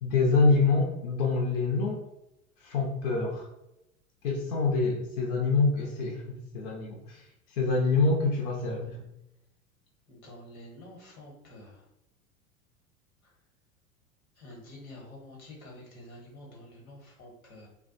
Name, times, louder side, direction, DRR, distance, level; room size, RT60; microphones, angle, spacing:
voice 1, 0.0-2.0 2.6-3.5 4.2-9.0, left 3 dB, 60° left, -2 dB, 0.6 m, -26 dB
voice 2, 10.1-11.7 14.4-17.7, left 1 dB, 80° left, -2 dB, 1.1 m, -48 dB
2.3 x 2.1 x 2.5 m, 0.85 s
figure-of-eight pair, 85°, 42 cm